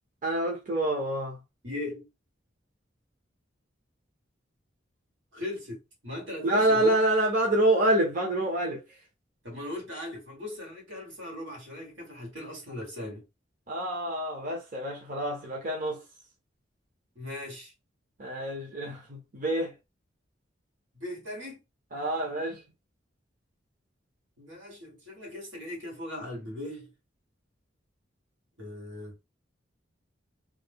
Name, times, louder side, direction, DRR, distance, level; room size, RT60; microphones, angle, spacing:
voice 1, 0.2-1.4 6.4-8.8 13.7-16.0 18.2-19.7 21.9-22.6, right 1 dB, 45° right, 0.9 m, -27 dB
voice 2, 1.6-2.1 5.3-6.9 9.4-13.3 17.2-17.7 20.9-21.6 24.4-26.9 28.6-29.2, left 1 dB, 90° right, 1.9 m, -39 dB
3.1 x 2.2 x 3.6 m
head